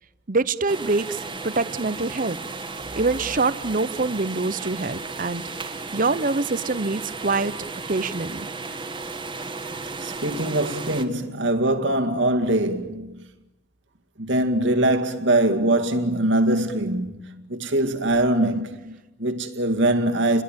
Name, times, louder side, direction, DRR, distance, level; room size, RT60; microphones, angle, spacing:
voice 1, 0.3-2.4 3.0-5.4 5.9-7.5 7.9-8.5, right 3 dB, 45° right, 0.9 m, -25 dB
sound 1, 0.7-11.0, right 3 dB, 25° right, 1.6 m, -34 dB
voice 2, 10.0-13.2 14.2-20.4, right 1 dB, 65° right, 2.1 m, -23 dB
30.0 x 22.0 x 8.9 m
head